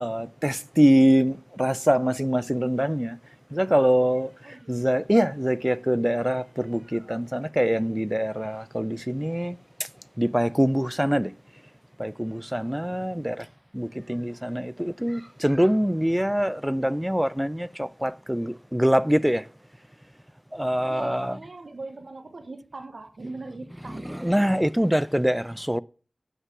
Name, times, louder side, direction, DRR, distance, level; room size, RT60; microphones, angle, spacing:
voice 1, 0.0-3.2 3.5-9.6 10.2-11.3 12.0-13.5 13.7-19.5 20.5-21.4 23.8-25.8, equal, 5° right, 0.3 m, -24 dB
voice 2, 4.4-5.1 13.1-13.4 20.8-24.1, right 3 dB, 85° right, 1.0 m, -41 dB
9.7 x 5.6 x 5.9 m
wide cardioid pair, 60°, 0 cm